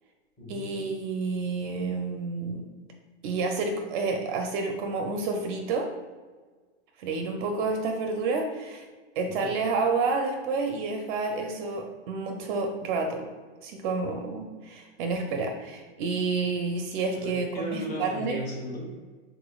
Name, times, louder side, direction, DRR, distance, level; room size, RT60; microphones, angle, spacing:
voice 1, 0.5-2.7 3.2-5.9 7.0-8.9 9.2-13.2 13.6-18.4, right 4 dB, 45° right, 3 dB, 0.5 m, -29 dB
voice 2, 17.2-19.0, equal, 25° left, -2 dB, 1.2 m, -36 dB
5.0 x 4.0 x 2.3 m, 1.4 s
supercardioid pair, 155°, 34 cm